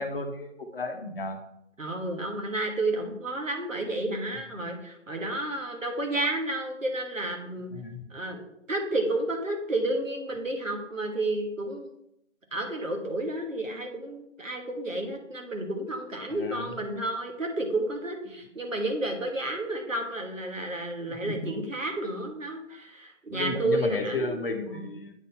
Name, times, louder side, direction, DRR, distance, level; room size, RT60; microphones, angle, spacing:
voice 1, 0.0-1.4 7.7-8.1 16.3-16.7 21.1-21.5 23.3-25.1, left 2 dB, 45° left, 6 dB, 0.9 m, -33 dB
voice 2, 1.8-7.7 8.1-8.4 8.7-11.9 12.5-24.9, right 2 dB, 80° right, 2 dB, 1.7 m, -31 dB
8.0 x 4.2 x 4.2 m, 0.77 s
figure-of-eight pair, 145°, 38 cm